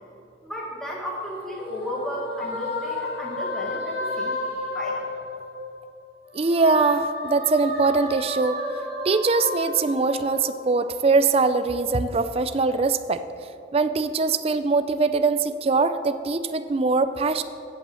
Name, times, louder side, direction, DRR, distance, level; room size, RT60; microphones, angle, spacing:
voice 1, 0.4-5.1, equal, ahead, -3 dB, 1.3 m, -33 dB
sound 1, 0.9-5.9 6.3-11.0, left 2 dB, 60° left, 2.1 m, -32 dB
voice 2, 6.3-8.6 9.0-13.2 13.7-17.4, right 4 dB, 30° right, 11 dB, 0.3 m, -22 dB
15.5 x 5.6 x 6.9 m, 2.7 s
head